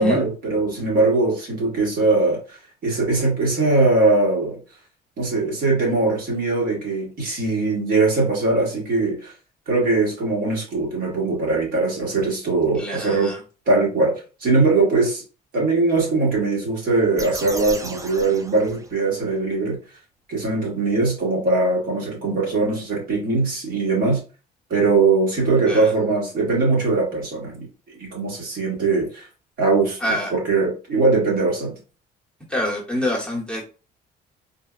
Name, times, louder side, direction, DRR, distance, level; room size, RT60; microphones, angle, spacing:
voice 1, 0.0-2.6 2.8-4.6 5.2-9.3 9.7-13.3 13.7-15.2 15.5-19.8 20.3-24.2 24.7-27.7 28.0-29.3 29.6-30.0 30.3-31.8, right 3 dB, 60° right, -3 dB, 1.7 m, -21 dB
voice 2, 12.7-13.4 25.7-25.9 30.0-30.3 32.5-33.6, left 1 dB, 5° left, -3 dB, 1.0 m, -25 dB
sound 1, 17.2-19.3, right 2 dB, 20° right, 0.4 m, -36 dB
3.8 x 2.2 x 2.5 m, 0.35 s
cardioid pair, 110°, 17 cm